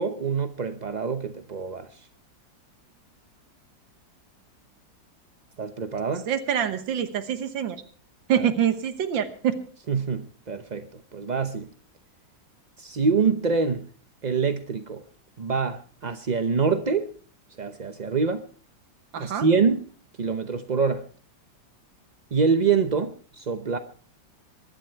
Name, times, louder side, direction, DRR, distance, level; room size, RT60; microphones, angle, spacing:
voice 1, 0.0-2.0 5.6-6.3 8.3-8.5 9.9-11.7 12.8-13.9 14.2-15.0 15.4-17.1 17.6-18.4 19.2-19.8 20.2-21.0 22.3-23.8, right 5 dB, 50° right, 0.5 m, -25 dB
voice 2, 6.3-7.8 8.3-9.6 19.1-19.5, right 9 dB, 90° right, 1.9 m, -25 dB
23.5 x 11.5 x 4.5 m
omnidirectional pair, 2.0 m